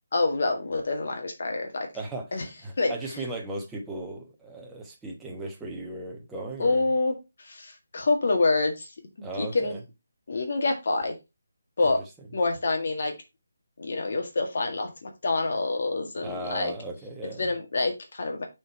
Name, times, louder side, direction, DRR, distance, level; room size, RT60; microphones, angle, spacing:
voice 1, 0.1-1.9 2.3-2.5 2.8-2.9 6.6-7.1 7.4-8.9 9.3-9.8 10.3-11.2 11.8-12.0 12.3-13.1 13.8-16.7 17.4-18.4, left 3 dB, 55° left, 1.8 m, -26 dB
voice 2, 1.9-6.8 9.2-9.8 11.8-11.9 16.2-17.5, right 2 dB, 5° right, 1.1 m, -37 dB
6.4 x 4.4 x 4.5 m
figure-of-eight pair, 165°, 0 cm